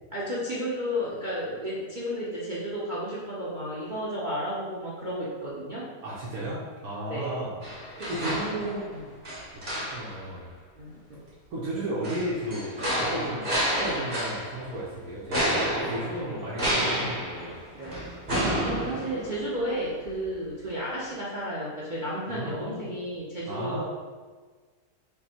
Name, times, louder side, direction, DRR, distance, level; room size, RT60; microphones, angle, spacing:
voice 1, 0.1-5.8 7.1-7.5 8.0-9.1 10.8-11.2 17.7-18.1 18.6-23.8, equal, 50° right, -7 dB, 0.6 m, -33 dB
voice 2, 6.0-8.9 9.7-10.5 11.5-17.6 18.4-18.6 22.3-22.9 23.5-23.8, right 1 dB, 65° right, -7 dB, 1.2 m, -34 dB
sound 1, 7.6-8.9 9.2-10.2 12.0-14.7 15.3-19.6 20.0-20.1, equal, 25° right, 1.4 m, -30 dB
5.3 x 2.1 x 4.3 m, 1.4 s
omnidirectional pair, 1.7 m